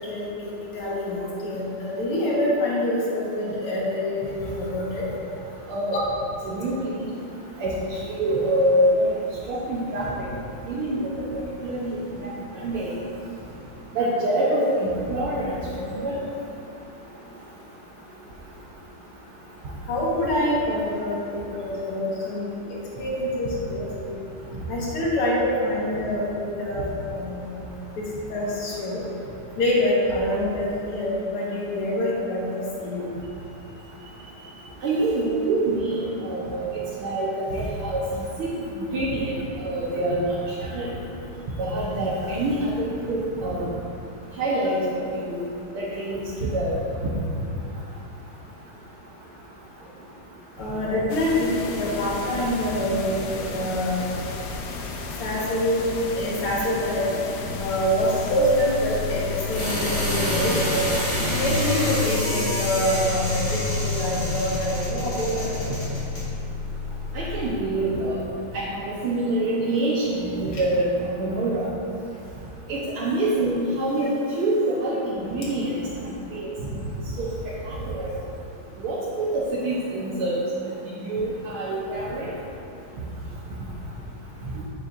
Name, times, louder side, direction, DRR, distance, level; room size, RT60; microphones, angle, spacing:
voice 1, 0.0-5.1 19.9-22.6 23.0-24.2 24.7-27.6 28.3-29.0 29.6-33.1 50.6-54.0 55.2-57.1 57.6-60.8 61.2-65.7, left 1 dB, 90° left, -6 dB, 2.4 m, -26 dB
voice 2, 6.4-7.1 7.6-9.1 9.5-10.3 10.7-11.0 11.6-11.9 12.2-12.3 12.6-13.0 14.0-16.2 34.8-36.6 37.0-38.0 38.4-38.5 38.9-39.4 39.6-40.4 40.7-40.9 41.6-43.7 44.4-45.4 45.8-46.8 60.7-60.9 67.1-68.2 68.5-71.7 72.7-74.1 74.4-75.7 76.3-76.5 77.2-77.3 77.7-78.1 78.8-80.3 80.9-82.3, right 1 dB, 80° right, -7 dB, 2.0 m, -25 dB
sound 1, 51.1-59.8, left 4 dB, 65° left, 1.1 m, -34 dB
sound 2, 57.3-67.4, left 2 dB, 35° left, 2.1 m, -27 dB
9.8 x 8.8 x 2.6 m, 2.6 s
omnidirectional pair, 2.4 m